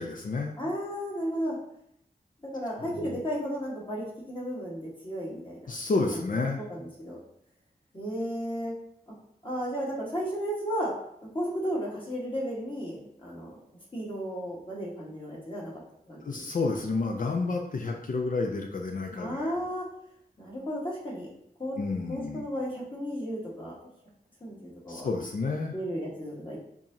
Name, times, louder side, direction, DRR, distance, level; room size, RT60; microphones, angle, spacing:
voice 1, 0.0-0.5 2.9-3.0 5.7-6.6 16.2-19.5 21.8-22.5 24.9-25.7, left 3 dB, 55° left, 2 dB, 0.5 m, -30 dB
voice 2, 0.6-1.6 2.4-5.6 6.6-7.2 7.9-8.7 9.4-10.9 11.2-13.6 13.9-15.8 16.1-16.4 19.2-19.8 20.4-21.3 21.6-21.8 22.1-23.7 24.4-25.1 25.7-26.6, equal, 30° left, -5 dB, 1.5 m, -34 dB
4.5 x 2.8 x 2.7 m, 0.74 s
wide cardioid pair, 65°, 16 cm